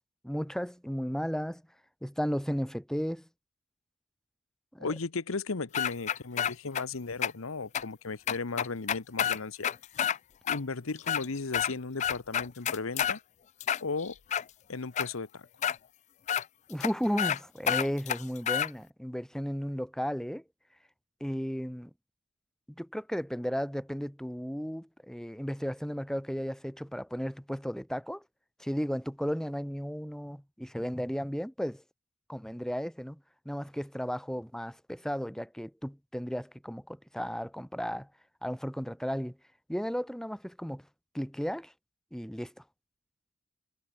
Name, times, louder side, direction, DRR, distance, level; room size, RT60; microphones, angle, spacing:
voice 1, 0.2-1.6 2.0-3.3 4.7-4.9 16.7-20.4 21.2-21.9 22.8-28.2 28.6-31.8 32.3-33.2 33.5-38.1 38.4-39.4 39.7-40.8 41.1-41.7 42.1-42.5, equal, 5° left, 2.3 m, -34 dB
voice 2, 4.8-9.7 10.5-13.2 13.8-14.1 14.7-15.4, left 4 dB, 80° left, 1.0 m, -35 dB
sound 1, 5.7-6.8 7.2-7.3 7.7-7.8 8.3-10.2 10.5-10.6 11.0-11.7 12.0-13.2 13.6-14.4 15.0-15.1 15.6-15.8 16.3-16.4 16.8-16.9 17.2-17.4 17.7-18.7, left 9 dB, 35° left, 0.3 m, -29 dB
head